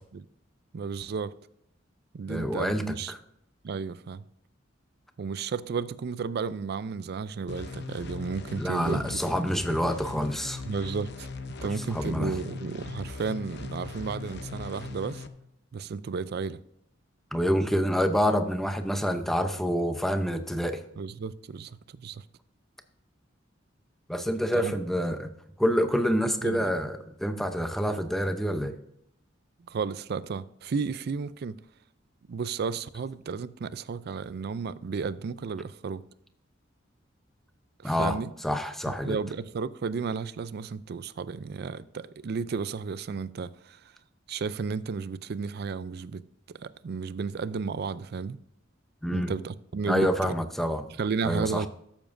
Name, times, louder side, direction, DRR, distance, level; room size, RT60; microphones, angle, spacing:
voice 1, 0.7-1.4 2.1-3.1 3.6-4.3 5.2-9.2 10.7-11.3 11.6-15.3 15.7-16.6 21.0-22.2 24.5-24.7 26.4-26.7 29.7-31.6 32.3-36.0 37.8-38.3 39.0-43.9 44.3-46.2 46.5-48.4 49.1-50.3 51.0-51.7, right 5 dB, 55° right, 0.4 m, -33 dB
voice 2, 2.3-2.8 3.1-3.2 8.6-10.6 11.9-12.3 17.3-20.8 24.1-25.3 25.6-28.8 37.8-38.2 38.4-39.2 49.0-49.3 49.9-50.9 51.2-51.6, equal, ahead, 0.7 m, -27 dB
sound 1, 7.5-15.3, left 4 dB, 60° left, 0.7 m, -39 dB
13.5 x 7.1 x 2.6 m
head